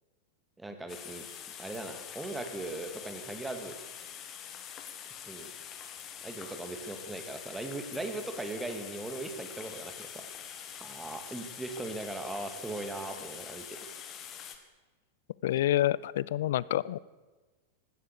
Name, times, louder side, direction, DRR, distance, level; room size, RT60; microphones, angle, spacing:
voice 1, 0.6-1.2 1.6-3.8 5.3-5.5 6.2-10.3 10.7-13.8, right 2 dB, 10° right, 6 dB, 2.1 m, -39 dB
sound 1, 0.9-14.6, left 9 dB, 30° left, 1.7 m, -45 dB
voice 2, 15.4-17.0, left 13 dB, 55° left, 22 dB, 0.4 m, -28 dB
16.0 x 12.5 x 6.8 m, 1.3 s
figure-of-eight pair, 90°, 0 cm